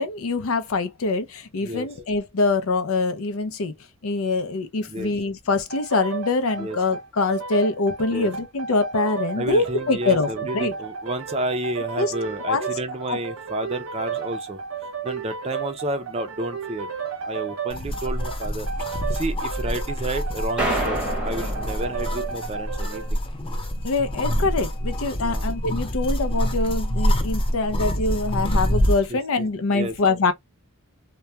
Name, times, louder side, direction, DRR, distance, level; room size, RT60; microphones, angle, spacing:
voice 1, 0.0-3.7 4.0-10.3 10.5-10.7 12.0-12.1 12.5-12.7 13.1-13.2 19.1-19.2 23.8-30.3, left 3 dB, 75° left, 0.5 m, -24 dB
sound 1, 5.7-23.1, right 6 dB, 75° right, 0.5 m, -33 dB
voice 2, 9.4-14.6 15.0-16.9 17.2-23.2 25.2-25.4 29.1-29.5 29.7-29.9, right 1 dB, 30° right, 0.5 m, -31 dB
sound 2, 17.7-29.1, equal, 25° left, 0.5 m, -26 dB
sound 3, 20.6-23.0, right 1 dB, 5° right, 0.8 m, -29 dB
2.3 x 2.2 x 2.7 m
head